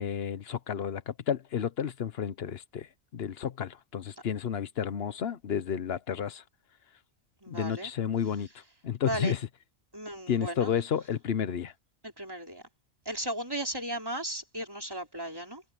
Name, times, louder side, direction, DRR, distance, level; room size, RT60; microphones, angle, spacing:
voice 1, 0.0-2.9 3.1-6.4 7.5-8.5 8.8-9.4 10.3-11.7, left 8 dB, 60° left, 1.1 m, -31 dB
voice 2, 7.4-7.9 9.0-9.4 9.9-10.7 12.0-12.6 13.1-15.6, right 1 dB, 20° right, 4.3 m, -36 dB
omnidirectional pair, 1.2 m